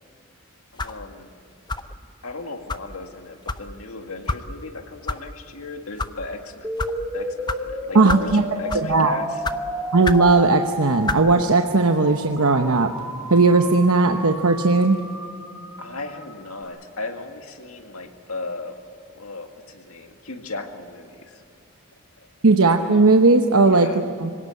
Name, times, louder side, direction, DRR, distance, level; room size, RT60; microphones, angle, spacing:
voice 1, 0.7-1.3 2.2-6.7 7.1-9.4 15.8-18.8 19.1-21.4 22.2-22.3 23.7-24.0, left 3 dB, 80° left, 5 dB, 2.0 m, -36 dB
sound 1, 0.8-1.0 1.7-2.0 2.7-2.9 3.5-3.6 4.3-4.4 5.1-5.2 5.8-6.1 6.8-6.9 7.5-7.6 8.1-8.3 8.7-8.9 9.4-9.6 10.0-10.3 11.0-11.2, left 3 dB, 20° left, 0.6 m, -27 dB
sound 2, 6.6-16.6, equal, 10° right, 2.0 m, -32 dB
voice 2, 7.9-8.4 8.8-9.2 9.9-12.9 13.3-15.0 22.4-24.3, right 3 dB, 80° right, 5 dB, 0.9 m, -17 dB
25.5 x 17.5 x 8.4 m, 2.6 s
head